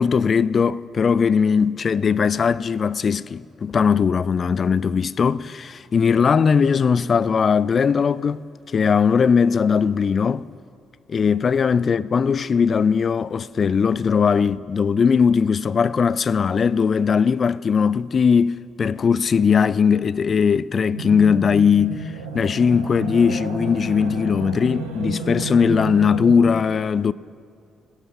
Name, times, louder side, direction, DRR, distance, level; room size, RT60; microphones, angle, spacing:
voice 1, 0.0-10.5 11.1-27.1, left 6 dB, 45° left, 0.3 m, -19 dB
sound 1, 20.9-26.5, right 3 dB, 85° right, 1.4 m, -31 dB
19.0 x 17.0 x 2.8 m
figure-of-eight pair, 45°, 0 cm